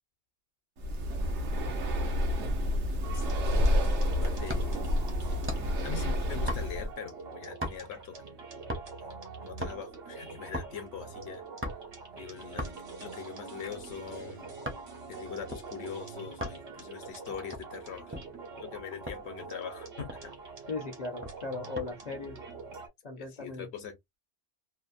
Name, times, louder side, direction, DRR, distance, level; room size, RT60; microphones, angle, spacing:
Breathing, 0.8-6.9, left 1 dB, 80° right, 1.0 m, -29 dB
sound 1, 3.0-22.9, right 4 dB, 65° right, 1.2 m, -45 dB
voice 1, 3.1-3.9 4.2-4.8 5.4-5.5 5.8-8.2 9.4-11.4 12.2-12.7 13.0-14.5 15.1-18.2 18.6-20.3 23.2-24.2, left 7 dB, 70° left, 0.9 m, -42 dB
sound 2, 3.6-3.9 4.5-4.9 5.5-5.8 6.5-6.9 7.6-8.0 8.7-9.1 9.4-9.8 10.5-10.8 11.6-12.0 12.6-12.9 13.5-14.9 15.5-15.6 16.4-16.7 17.3-18.3 19.1-19.3 19.7-19.8 20.0-20.4 21.2-21.9 22.2-22.6, equal, 15° right, 0.5 m, -38 dB
voice 2, 20.7-22.4 23.0-23.7, left 3 dB, 45° left, 0.6 m, -37 dB
2.7 x 2.0 x 2.4 m
omnidirectional pair, 1.2 m